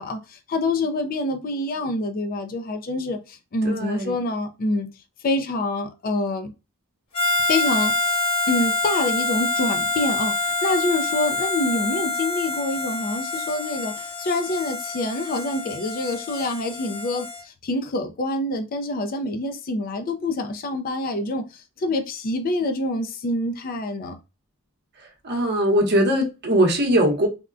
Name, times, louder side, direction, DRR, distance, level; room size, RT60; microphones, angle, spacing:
voice 1, 0.0-4.9 5.2-6.5 7.4-24.2, left 2 dB, 40° left, 0.4 m, -26 dB
voice 2, 3.6-4.1 25.2-27.3, equal, 50° right, 0.9 m, -20 dB
Harmonica, 7.1-17.4, left 3 dB, 75° left, 1.3 m, -26 dB
3.5 x 2.1 x 2.4 m
head